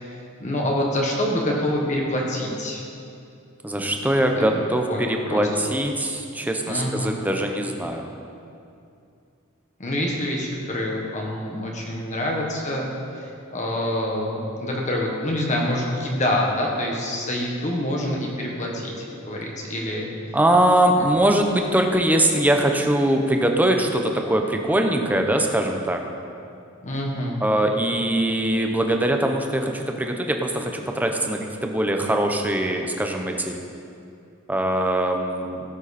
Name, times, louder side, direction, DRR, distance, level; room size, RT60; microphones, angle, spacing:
voice 1, 0.1-2.8 4.3-4.6 4.9-5.5 6.6-7.2 9.8-18.9 19.2-20.1 26.8-27.4, left 1 dB, 35° left, -1 dB, 1.5 m, -26 dB
voice 2, 3.6-8.1 20.3-26.0 27.4-33.6 34.5-35.6, right 1 dB, 10° right, 3 dB, 0.8 m, -22 dB
16.5 x 7.8 x 4.3 m, 2.6 s
head